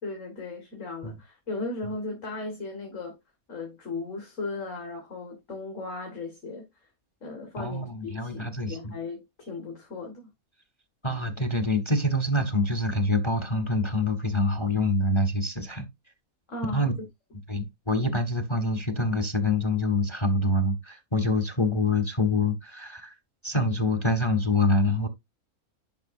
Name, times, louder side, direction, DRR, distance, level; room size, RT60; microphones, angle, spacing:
voice 1, 0.0-3.2 3.5-6.6 7.2-10.3 16.5-16.9, left 3 dB, 55° left, 2.3 m, -36 dB
voice 2, 7.6-8.9 11.0-15.9 16.6-16.9 17.5-23.1 23.4-25.1, left 2 dB, 25° left, 0.8 m, -26 dB
10.5 x 5.5 x 2.6 m
omnidirectional pair, 1.5 m